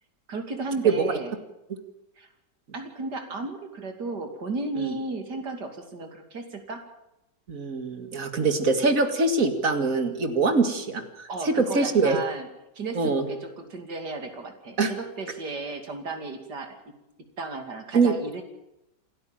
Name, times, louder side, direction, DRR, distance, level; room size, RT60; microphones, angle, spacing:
voice 1, 0.3-1.3 2.2-2.3 2.7-6.8 11.3-12.5 12.7-16.8 17.4-18.4, right 3 dB, 75° right, 6 dB, 3.3 m, -34 dB
voice 2, 7.5-12.2 13.0-13.2 14.8-14.9 17.9-18.1, right 4 dB, 50° right, 8 dB, 2.5 m, -23 dB
28.0 x 12.5 x 8.9 m, 0.88 s
omnidirectional pair, 1.8 m